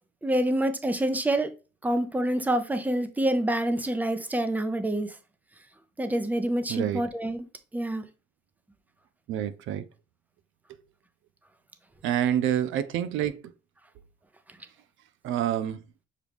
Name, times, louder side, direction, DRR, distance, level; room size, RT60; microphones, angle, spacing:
voice 1, 0.2-1.5 1.8-5.1 6.0-7.4 7.7-8.0, right 1 dB, 10° right, 0.6 m, -27 dB
voice 2, 6.7-7.0 9.3-9.8 12.0-13.4 15.2-15.8, right 10 dB, 80° right, 0.5 m, -27 dB
6.4 x 2.3 x 3.4 m
cardioid pair, 90°, 20 cm